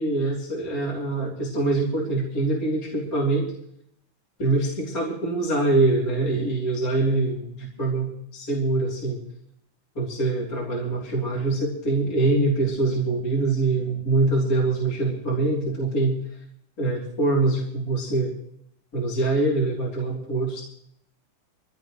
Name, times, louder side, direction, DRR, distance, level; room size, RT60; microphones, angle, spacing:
voice 1, 0.0-3.5 4.4-9.2 10.0-16.1 16.8-18.3 18.9-20.6, right 2 dB, 25° left, -4 dB, 3.5 m, -24 dB
24.0 x 16.5 x 3.2 m, 0.72 s
omnidirectional pair, 4.1 m